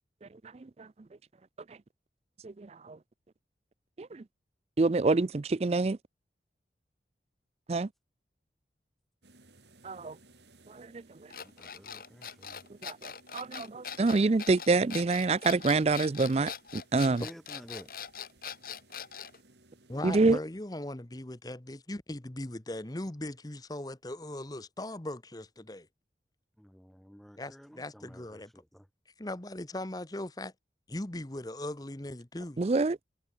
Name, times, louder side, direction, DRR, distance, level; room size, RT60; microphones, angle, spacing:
voice 1, 2.4-3.0 4.0-4.2 4.8-6.0 7.7-7.9 9.8-10.1 10.7-10.9 12.8-17.2 20.0-20.4 32.6-33.0, right 3 dB, 35° right, 0.4 m, -27 dB
sound 1, 9.2-20.2, right 2 dB, 75° right, 6.3 m, -62 dB
sound 2, 11.3-19.4, left 7 dB, 55° left, 5.1 m, -42 dB
voice 2, 11.4-12.6 17.1-17.9 26.6-28.9, equal, ahead, 5.1 m, -51 dB
voice 3, 19.9-25.8 27.4-28.5 29.2-30.5 30.9-32.6, left 1 dB, 20° left, 1.0 m, -39 dB
head